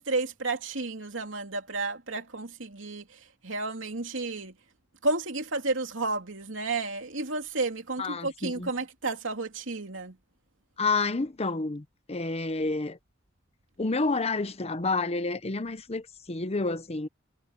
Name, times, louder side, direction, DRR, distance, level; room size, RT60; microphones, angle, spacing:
voice 1, 0.0-4.5 5.0-10.2, right 3 dB, 80° right, 3.0 m, -32 dB
voice 2, 8.0-8.7 10.8-13.0 13.8-17.1, left 3 dB, 35° left, 0.9 m, -29 dB
head